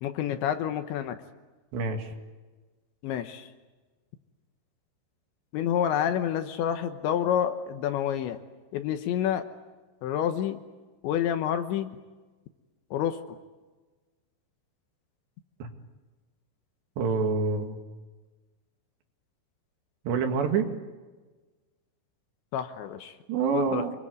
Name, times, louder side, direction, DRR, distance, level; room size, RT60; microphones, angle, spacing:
voice 1, 0.0-1.2 3.0-3.5 5.5-8.4 8.7-9.4 10.0-10.6 11.0-11.9 12.9-13.2 22.5-23.2 23.5-23.8, left 10 dB, 75° left, 9 dB, 3.1 m, -28 dB
voice 2, 1.7-2.1 15.6-15.7 17.0-17.8 20.1-20.7 23.3-23.9, right 5 dB, 65° right, 5 dB, 4.0 m, -27 dB
28.0 x 22.5 x 9.6 m, 1.3 s
omnidirectional pair, 5.8 m